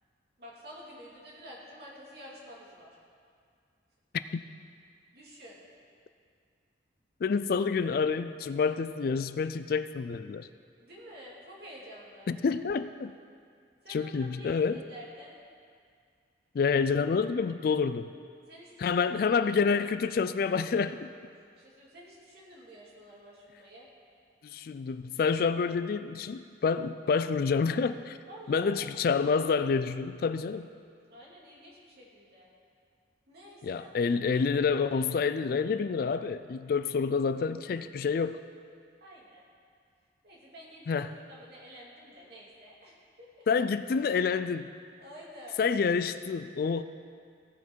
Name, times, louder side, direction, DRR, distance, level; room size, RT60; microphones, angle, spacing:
voice 1, 0.4-3.0 5.1-5.6 10.8-12.3 13.8-15.4 18.5-19.3 21.5-23.9 28.3-28.8 31.1-32.5 33.3-33.9 39.0-39.4 40.2-43.4 45.0-45.6, equal, 55° right, -5 dB, 2.5 m, -50 dB
voice 2, 7.2-10.5 12.3-13.1 13.9-14.8 16.5-18.1 18.8-21.1 24.4-28.2 28.5-30.7 33.6-38.4 40.9-41.2 43.5-44.7 45.6-46.8, left 5 dB, 50° left, 12 dB, 0.3 m, -28 dB
16.0 x 5.8 x 4.5 m, 2.2 s
head